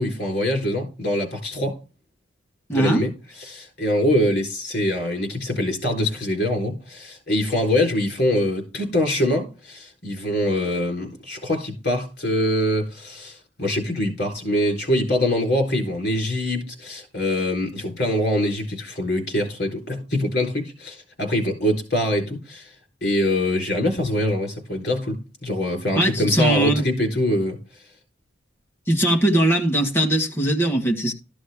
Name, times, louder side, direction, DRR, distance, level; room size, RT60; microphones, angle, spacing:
voice 1, 0.0-1.8 2.7-3.1 3.4-22.7 23.0-27.6, left 1 dB, 50° left, 3.8 m, -24 dB
voice 2, 2.7-3.0 25.9-26.8 28.9-31.1, right 1 dB, 10° left, 1.4 m, -20 dB
13.0 x 6.3 x 3.5 m
head